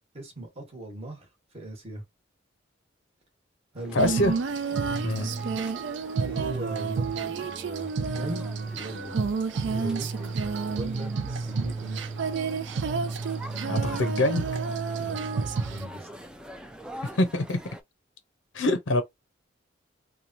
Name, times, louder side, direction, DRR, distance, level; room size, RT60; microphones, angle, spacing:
voice 1, 0.1-1.3 1.5-2.0 3.7-4.3 4.7-5.0 6.2-8.4 8.7-9.1 9.6-10.4 10.7-11.1 11.4-12.1 15.0-15.2 15.6-16.1, right 1 dB, 35° right, 1.1 m, -39 dB
sound 1, 3.8-17.8, equal, 5° right, 0.3 m, -45 dB
voice 2, 3.9-4.3 5.0-5.3 13.7-14.5 17.2-17.6 18.5-19.0, left 1 dB, 80° left, 0.6 m, -24 dB
Female singing, 4.0-15.9, right 5 dB, 70° right, 0.4 m, -30 dB
3.0 x 2.2 x 2.5 m
head